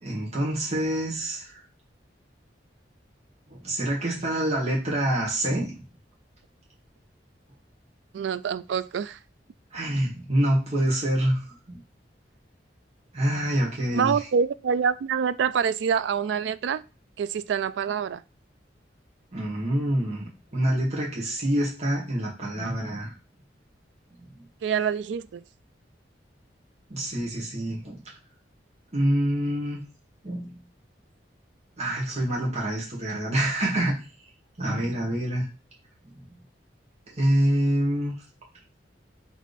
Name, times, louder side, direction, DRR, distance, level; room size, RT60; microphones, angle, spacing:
voice 1, 0.0-1.6 3.5-5.8 9.7-11.8 13.1-14.1 19.3-23.1 26.9-28.0 28.9-29.8 30.2-30.5 31.8-34.0 34.6-35.5 37.2-38.1, right 1 dB, 40° right, 1.7 m, -26 dB
voice 2, 8.1-9.2 13.9-16.8 17.2-18.2 24.6-25.4, right 7 dB, 75° right, 0.3 m, -26 dB
3.6 x 3.4 x 4.1 m
head